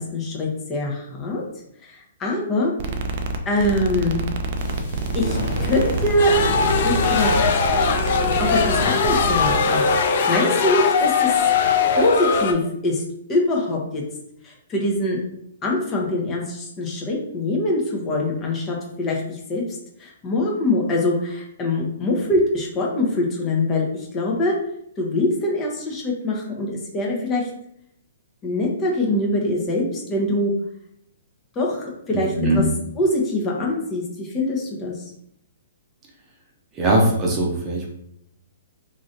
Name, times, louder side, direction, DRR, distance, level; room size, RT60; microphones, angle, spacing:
voice 1, 0.0-1.4 1.8-2.7 3.5-4.2 5.1-6.3 6.8-7.4 8.4-9.8 10.3-11.4 11.9-13.0 13.3-14.0 14.4-15.2 15.6-24.5 25.0-27.5 28.4-30.5 31.5-32.6 33.0-35.0, left 1 dB, 25° left, -2 dB, 0.8 m, -23 dB
sound 1, 2.8-9.6, right 2 dB, 50° right, 0.4 m, -27 dB
sound 2, 4.5-10.0, right 1 dB, 80° left, 1.3 m, -30 dB
sound 3, 6.2-12.5, left 5 dB, 55° left, 0.4 m, -20 dB
voice 2, 32.1-32.6 36.7-37.9, right 1 dB, 25° right, -2 dB, 0.7 m, -20 dB
3.0 x 2.7 x 2.5 m, 0.74 s
hypercardioid pair, 125°, 0 cm